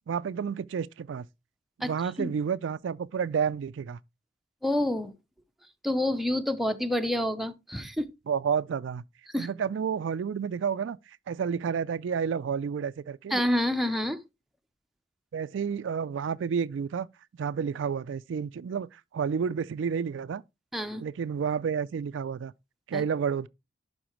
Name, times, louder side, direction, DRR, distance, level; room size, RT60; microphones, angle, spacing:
voice 1, 0.1-1.3 1.8-4.0 8.3-9.0 9.4-11.0 11.3-13.4 15.3-17.1 17.4-20.4 21.0-22.5 22.9-23.5, right 7 dB, 75° right, 0.3 m, -30 dB
voice 2, 4.6-5.2 5.8-8.1 9.3-9.5 13.3-14.2 20.7-21.0 22.9-23.0, left 1 dB, ahead, 0.6 m, -28 dB
11.0 x 4.2 x 3.0 m
head